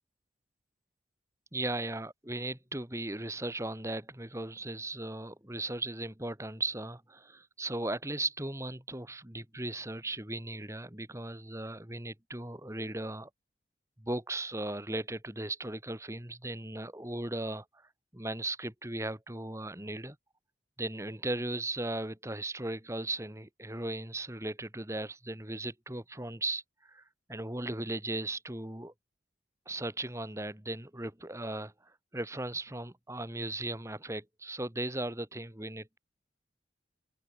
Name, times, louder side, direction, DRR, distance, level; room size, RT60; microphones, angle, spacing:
voice 1, 1.5-13.3 14.0-20.2 20.8-27.0 27.3-28.9 29.7-36.0, right 2 dB, 15° right, 2.3 m, -37 dB
open air
head